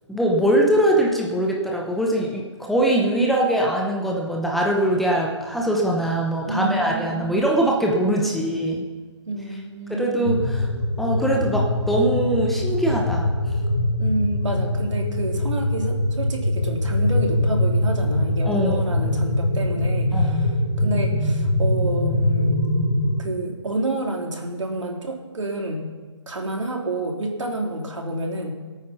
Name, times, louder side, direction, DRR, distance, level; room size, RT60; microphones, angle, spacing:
voice 1, 0.1-8.8 9.9-10.7 11.0-13.3 18.5-18.8 20.1-20.5, right 1 dB, ahead, -2 dB, 0.7 m, -22 dB
voice 2, 6.5-7.2 8.2-8.3 9.3-10.3 14.0-22.7 23.2-25.9 26.3-28.5, right 1 dB, 85° right, 1 dB, 3.2 m, -28 dB
sound 1, 10.2-23.2, left 1 dB, 50° left, 3.5 m, -23 dB
20.0 x 9.0 x 5.8 m, 1.4 s
hypercardioid pair, 160°, 15 cm